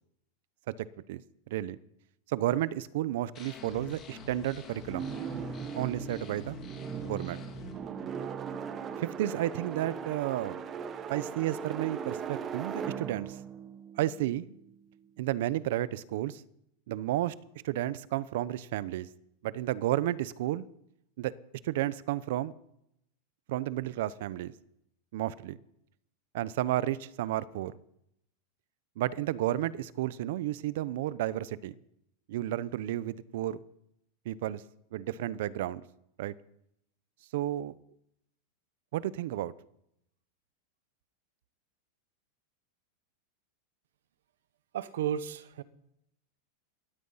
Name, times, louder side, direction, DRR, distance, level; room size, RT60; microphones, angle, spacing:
voice 1, 2.3-5.1 5.7-6.6 7.0-7.4 9.0-10.6 11.1-13.4 14.0-14.5 15.2-16.4 16.9-17.3 17.6-19.1 19.4-20.7 21.2-21.3 21.6-22.5 23.5-24.5 25.1-25.6 26.3-27.7 29.0-31.7 32.3-33.6 34.2-34.6 34.9-35.8 36.2-36.3 37.3-37.7 38.9-39.5, right 14 dB, 55° right, 19 dB, 0.7 m, -32 dB
sound 1, 3.4-7.7, left 6 dB, 20° left, 2.8 m, -46 dB
sound 2, 4.9-14.9, right 7 dB, 20° right, 0.9 m, -39 dB
voice 2, 44.7-45.6, right 10 dB, 85° right, 15 dB, 1.1 m, -33 dB
17.0 x 13.5 x 5.6 m, 0.78 s
supercardioid pair, 175°, 0 cm